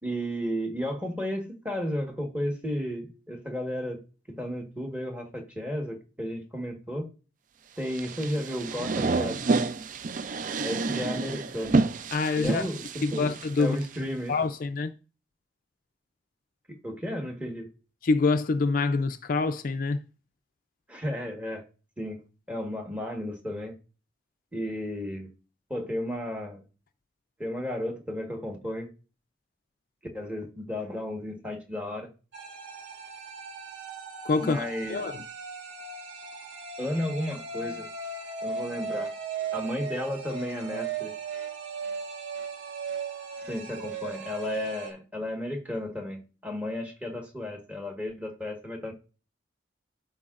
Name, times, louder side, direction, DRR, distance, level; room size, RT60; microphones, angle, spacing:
voice 1, 0.0-4.0 4.3-7.1 7.8-9.4 10.6-11.7 12.4-12.8 13.1-14.4 16.7-17.7 20.9-21.6 22.0-22.2 22.5-23.7 24.5-25.3 25.7-26.7 27.4-28.9 30.1-32.1 34.4-35.1 36.8-37.9 38.4-39.1 39.5-41.1 43.5-48.9, left 1 dB, 10° right, 1.3 m, -33 dB
sound 1, 7.9-14.0, right 3 dB, 45° right, 0.4 m, -29 dB
voice 2, 12.1-12.7 13.0-13.8 14.3-14.9 18.0-20.0 34.2-34.6 34.9-35.2, left 3 dB, 45° left, 0.4 m, -26 dB
sound 2, 32.3-44.9, right 5 dB, 75° right, 1.6 m, -37 dB
13.0 x 4.7 x 2.5 m
head